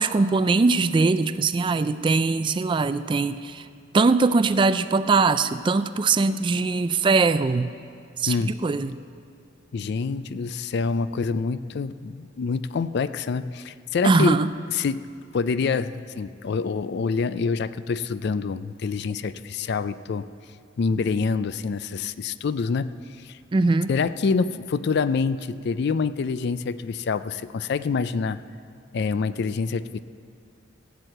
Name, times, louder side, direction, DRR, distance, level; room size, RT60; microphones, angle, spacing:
voice 1, 0.0-3.6 3.9-7.7 8.2-9.0 14.0-14.5 23.5-23.9, right 3 dB, 25° right, 13 dB, 0.3 m, -21 dB
voice 2, 8.3-8.6 9.7-15.0 15.3-20.2 20.8-23.0 23.2-23.4 23.9-28.4 28.9-30.0, left 5 dB, 60° left, 15 dB, 0.4 m, -26 dB
15.0 x 8.2 x 7.8 m, 2.3 s
head